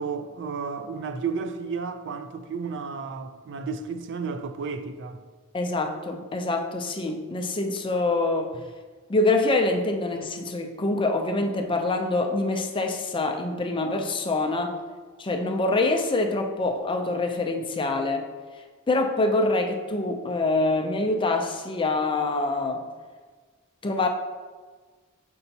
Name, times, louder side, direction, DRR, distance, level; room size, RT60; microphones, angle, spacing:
voice 1, 0.0-5.2, right 5 dB, 55° right, 0.4 m, -32 dB
voice 2, 5.5-8.5 9.1-14.8 15.2-18.3 18.9-22.8 23.8-24.1, left 2 dB, 25° left, 0.5 m, -25 dB
6.8 x 5.4 x 2.7 m
head